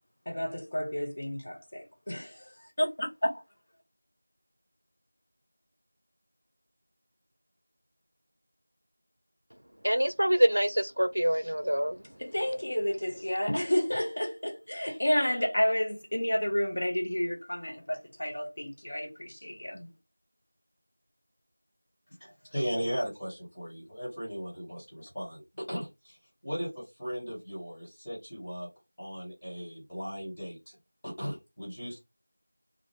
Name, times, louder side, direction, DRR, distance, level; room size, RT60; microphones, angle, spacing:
voice 1, 0.3-2.5 2.8-3.4 12.2-19.9, equal, 30° left, 0.5 m, -30 dB
voice 2, 9.8-12.0, equal, 70° right, 0.4 m, -25 dB
voice 3, 22.2-25.4 25.7-26.2 26.4-28.7 29.0-30.7 31.0-32.0, equal, 10° left, 1.3 m, -37 dB
2.4 x 2.4 x 3.2 m
figure-of-eight pair, 175°, 0 cm